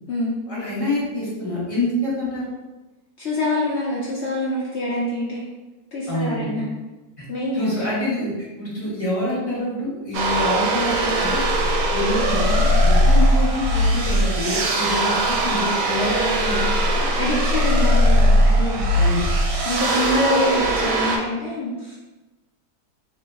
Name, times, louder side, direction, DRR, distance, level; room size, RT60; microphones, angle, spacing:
voice 1, 0.5-2.5 6.1-6.6 7.5-11.4 11.9-17.1 18.9-19.2, left 1 dB, 30° left, -8 dB, 0.6 m, -26 dB
voice 2, 3.2-5.4 5.9-6.6 7.3-7.8 17.2-19.0 19.6-21.9, left 1 dB, 80° left, -6 dB, 0.6 m, -25 dB
sound 1, 10.1-21.2, equal, 85° right, 1.2 m, -19 dB
3.0 x 2.0 x 3.4 m, 1.1 s
omnidirectional pair, 1.9 m